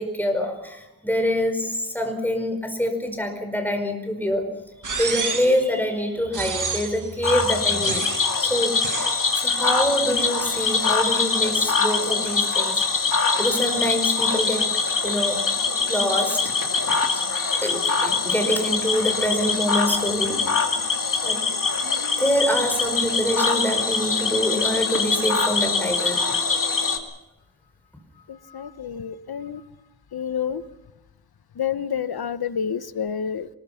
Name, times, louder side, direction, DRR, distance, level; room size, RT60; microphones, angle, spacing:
voice 1, 0.0-4.5 4.9-8.0 8.4-8.9 9.4-12.8 13.4-14.7 15.0-15.4 15.9-16.7 17.0-20.4 21.2-21.4 22.2-26.3, equal, 5° left, 4 dB, 5.0 m, -25 dB
sound 1, 4.8-5.6 6.3-7.1 7.8-8.4 8.8-9.2, right 4 dB, 55° right, 2.0 m, -29 dB
Cricket / Frog, 7.2-27.0, left 4 dB, 60° left, 2.5 m, -23 dB
voice 2, 28.3-29.6 30.1-30.6 31.6-33.5, left 7 dB, 85° left, 12 dB, 1.1 m, -29 dB
24.0 x 21.0 x 5.9 m, 0.99 s
wide cardioid pair, 120°, 36 cm